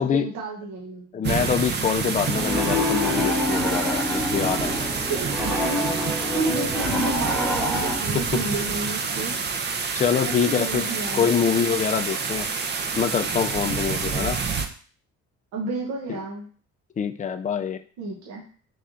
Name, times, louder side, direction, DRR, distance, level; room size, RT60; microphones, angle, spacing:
voice 1, 0.0-1.2 5.1-6.0 6.3-9.4 10.5-11.5 15.5-16.5 18.0-18.5, right 3 dB, 85° right, -2 dB, 1.0 m, -31 dB
voice 2, 1.1-4.9 8.1-8.4 9.9-10.9 11.1-12.5 13.0-14.4 16.1-16.2 17.0-17.8, left 7 dB, 25° left, 9 dB, 0.4 m, -25 dB
sound 1, 1.2-14.7, right 5 dB, 35° right, 0.5 m, -28 dB
Piano, 2.3-8.0, left 1 dB, ahead, 0.8 m, -26 dB
3.3 x 2.7 x 3.7 m, 0.42 s
supercardioid pair, 85°, 29 cm